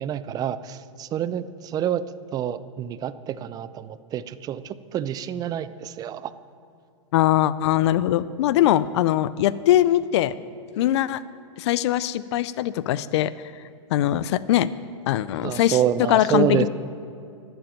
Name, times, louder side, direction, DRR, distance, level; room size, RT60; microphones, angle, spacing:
voice 1, 0.0-2.0 2.3-6.3 15.4-16.7, right 10 dB, 25° right, 15 dB, 0.5 m, -27 dB
voice 2, 7.1-10.3 10.8-11.2 11.6-13.3 13.9-14.7 15.1-15.8 16.1-16.7, left 13 dB, 60° left, 17 dB, 0.5 m, -21 dB
11.5 x 7.8 x 9.0 m, 2.4 s
hypercardioid pair, 125°, 16 cm